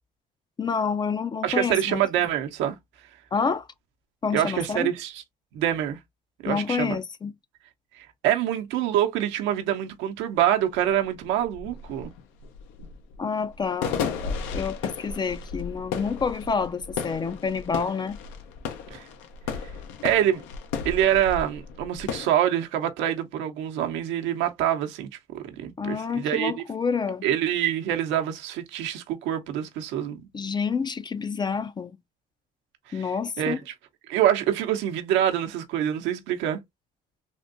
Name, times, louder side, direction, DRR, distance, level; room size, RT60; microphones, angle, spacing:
voice 1, 0.6-2.0 3.3-3.7 4.2-4.9 6.5-7.3 13.2-18.2 25.8-27.2 30.3-32.0 32.9-33.6, left 5 dB, 25° left, 0.3 m, -28 dB
voice 2, 1.4-2.8 4.3-5.2 5.5-6.0 6.4-7.0 8.0-12.1 18.9-19.0 20.0-20.4 20.8-26.6 27.2-30.3 32.9-33.1 33.4-33.6 34.1-36.6, right 11 dB, 80° right, 0.7 m, -25 dB
sound 1, 10.4-10.5 10.8-22.3, left 6 dB, 85° left, 0.6 m, -34 dB
3.5 x 2.6 x 2.5 m
supercardioid pair, 85°, 19 cm